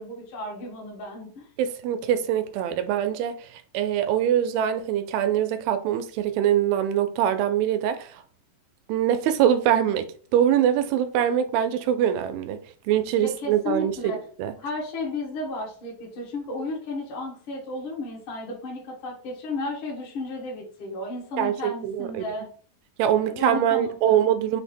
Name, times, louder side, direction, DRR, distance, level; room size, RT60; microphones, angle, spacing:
voice 1, 0.0-1.5 13.2-14.2 14.6-22.5 23.1-24.2, left 2 dB, 55° left, 1.5 m, -33 dB
voice 2, 1.6-3.4 3.7-8.1 8.9-10.1 10.3-12.6 12.9-14.5 21.4-22.2 23.0-24.6, right 10 dB, 85° right, 2.4 m, -23 dB
5.9 x 2.1 x 4.2 m
omnidirectional pair, 4.2 m